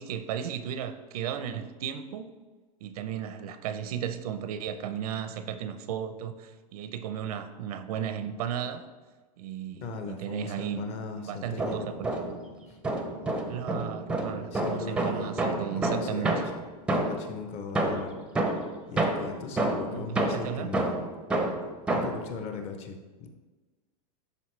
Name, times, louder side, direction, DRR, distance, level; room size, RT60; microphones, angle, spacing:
voice 1, 0.0-2.3 2.8-8.9 9.4-12.1 13.5-16.3 19.9-20.7, right 9 dB, 80° right, 10 dB, 0.6 m, -35 dB
voice 2, 9.8-11.8 12.7-12.8 14.5-15.4 15.7-16.6 17.1-18.2 18.9-21.0 21.9-23.3, left 5 dB, 35° left, 5 dB, 0.7 m, -38 dB
sound 1, 11.4-12.5 12.8-17.4 17.8-22.3, right 2 dB, 5° right, 0.5 m, -29 dB
11.0 x 3.8 x 3.2 m, 1.3 s
supercardioid pair, 155°, 19 cm